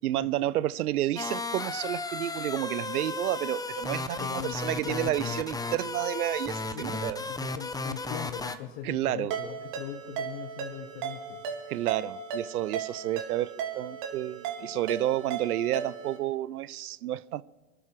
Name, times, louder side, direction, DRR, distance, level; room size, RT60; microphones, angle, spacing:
voice 1, 0.0-7.2 8.8-9.3 11.7-17.4, right 14 dB, 90° right, 0.6 m, -30 dB
sound 1, 1.2-8.6, left 3 dB, 10° left, 0.8 m, -34 dB
voice 2, 4.2-4.6 4.8-5.4 6.7-11.4, left 10 dB, 60° left, 1.6 m, -40 dB
Ringtone, 9.3-16.2, right 7 dB, 55° right, 3.4 m, -36 dB
25.0 x 11.5 x 4.8 m
hypercardioid pair, 95°, 43 cm